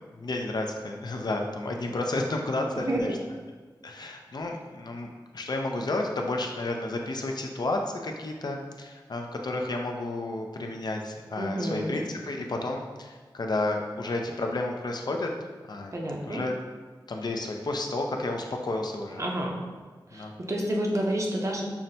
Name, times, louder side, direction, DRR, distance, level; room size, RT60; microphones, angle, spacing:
voice 1, 0.2-3.2 3.8-5.1 5.3-15.3 15.7-16.0 16.2-16.6 17.1-19.2 20.1-20.3, left 2 dB, 60° left, 2 dB, 0.4 m, -31 dB
voice 2, 2.8-3.2 11.4-12.0 15.9-16.4 19.2-19.6 20.1-21.7, right 1 dB, 40° right, -1 dB, 0.7 m, -29 dB
5.6 x 2.1 x 2.6 m, 1.4 s
wide cardioid pair, 60°, 8 cm